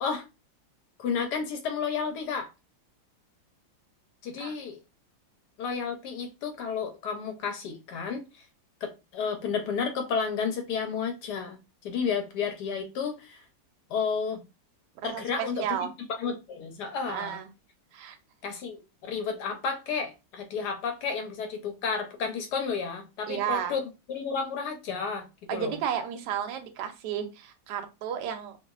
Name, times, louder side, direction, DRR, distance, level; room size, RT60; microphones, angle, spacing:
voice 1, 1.0-2.5 4.2-4.8 5.6-8.4 8.8-11.6 11.8-13.4 13.9-14.4 15.0-15.7 16.2-17.4 18.4-23.8 24.1-25.8, left 5 dB, 70° left, 1.1 m, -32 dB
voice 2, 15.0-15.9 17.1-17.4 17.9-18.2 23.3-23.8 25.5-28.6, right 9 dB, 75° right, 1.1 m, -32 dB
2.8 x 2.6 x 2.3 m
omnidirectional pair, 2.1 m